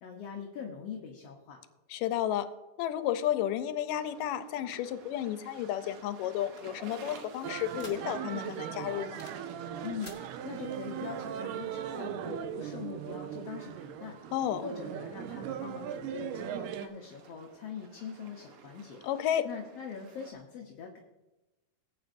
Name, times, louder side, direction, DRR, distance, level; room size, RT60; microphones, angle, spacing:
voice 1, 0.0-1.6 9.8-14.2 14.6-19.0 19.4-21.0, left 6 dB, 65° left, 1 dB, 1.7 m, -42 dB
voice 2, 1.9-2.5 2.8-9.2 14.3-14.6 19.0-19.5, left 11 dB, 90° left, 11 dB, 2.2 m, -32 dB
sound 1, 3.9-20.3, right 5 dB, 70° right, 1.4 m, -53 dB
sound 2, 5.9-8.4 8.7-9.5 9.8-10.2, left 2 dB, 15° left, 1.0 m, -53 dB
sound 3, 7.4-16.9, right 9 dB, 85° right, 2.2 m, -39 dB
19.0 x 9.0 x 2.6 m, 1.1 s
omnidirectional pair, 3.8 m